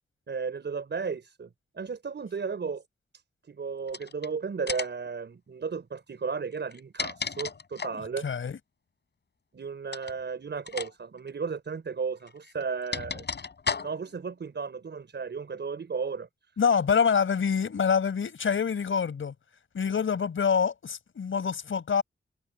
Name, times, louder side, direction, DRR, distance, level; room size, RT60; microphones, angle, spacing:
voice 1, 0.3-1.5 1.7-2.8 3.5-8.3 9.5-13.2 13.8-16.3, right 5 dB, 65° right, 5.8 m, -34 dB
sound 1, 3.9-4.3 4.7-5.1 6.6-8.1 9.9-10.2 10.7-10.9 11.2-11.3 12.3-14.2, left 5 dB, 60° left, 5.3 m, -34 dB
voice 2, 8.2-8.6 16.6-19.3 19.7-22.0, left 6 dB, 90° left, 5.4 m, -26 dB
wide cardioid pair, 120°, 20 cm